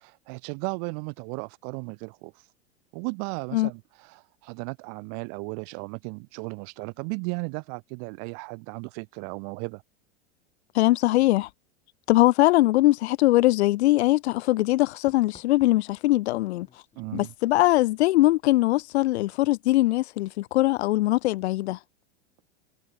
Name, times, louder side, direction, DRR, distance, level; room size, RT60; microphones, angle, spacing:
voice 1, 0.0-2.3 2.9-9.8 16.9-17.3, right 40 dB or more, 50° right, 1.2 m, -35 dB
voice 2, 10.7-11.5 12.1-16.7 17.1-21.8, left 17 dB, 75° left, 0.5 m, -21 dB
Knock, 15.1-18.5 18.8-19.2, left 6 dB, 20° left, 3.9 m, -56 dB
hypercardioid pair, 105°, 33 cm